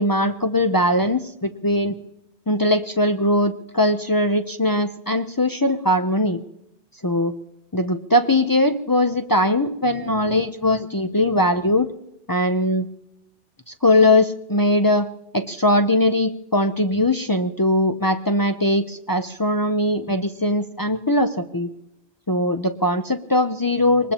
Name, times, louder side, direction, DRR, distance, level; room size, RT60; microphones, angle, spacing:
voice 1, 0.0-1.9 2.5-6.4 7.0-7.3 7.7-11.9 12.3-12.9 13.8-21.7 22.3-24.1, left 1 dB, 35° left, 6 dB, 0.3 m, -20 dB
23.5 x 20.0 x 2.9 m, 0.85 s
omnidirectional pair, 1.2 m